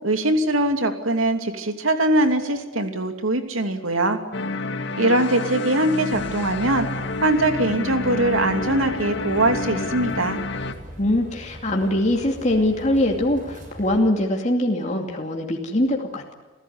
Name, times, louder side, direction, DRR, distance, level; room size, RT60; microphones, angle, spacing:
voice 1, 0.0-4.2 5.0-6.9 7.2-10.4, right 1 dB, 85° right, 6 dB, 2.9 m, -22 dB
sound 1, 4.3-10.7, left 3 dB, 60° left, 2.2 m, -29 dB
sound 2, 6.1-14.0, right 1 dB, 40° right, 6.7 m, -41 dB
voice 2, 11.0-16.3, left 1 dB, 35° left, 1 dB, 2.6 m, -22 dB
27.5 x 15.5 x 9.6 m, 1.3 s
head